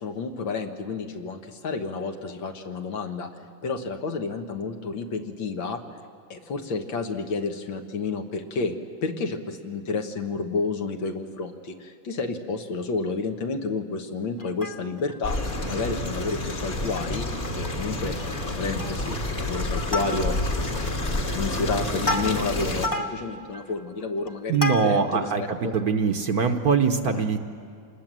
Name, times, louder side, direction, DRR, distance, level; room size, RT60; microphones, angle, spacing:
voice 1, 0.0-3.3 3.6-5.8 6.3-8.8 9.0-15.4 15.7-17.3 17.6-18.2 18.4-20.4 20.7-25.3 25.6-25.7 27.1-27.2, left 4 dB, 75° left, 5 dB, 2.1 m, -30 dB
Plucked string instrument, 14.4-15.2 15.6-15.7 16.0-16.2 16.6-17.3 17.6-17.7 18.1-18.4 18.8-19.2 19.5-20.6 21.1-25.2 25.7-25.8, left 2 dB, 20° left, 0.6 m, -32 dB
sound 1, 15.2-22.9, left 1 dB, 35° left, 1.8 m, -29 dB
voice 2, 24.5-27.5, right 5 dB, 55° right, 6 dB, 1.3 m, -23 dB
27.0 x 20.0 x 7.5 m, 2.2 s
omnidirectional pair, 2.2 m